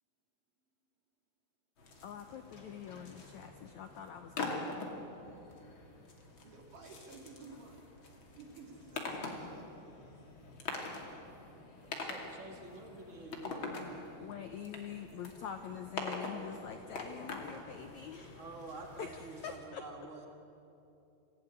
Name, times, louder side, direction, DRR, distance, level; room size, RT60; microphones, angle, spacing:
sound 1, 1.8-19.6, left 3 dB, 35° left, 2.8 m, -45 dB
voice 1, 2.0-5.0 14.1-18.4 19.0-19.8, left 8 dB, 80° left, 7 dB, 1.7 m, -45 dB
voice 2, 6.4-7.9 8.4-10.1, right 4 dB, 60° right, 2 dB, 3.8 m, -54 dB
voice 3, 11.8-14.0 18.4-20.3, right 2 dB, 85° right, 2 dB, 0.6 m, -49 dB
25.0 x 16.0 x 9.7 m, 2.9 s
omnidirectional pair, 4.5 m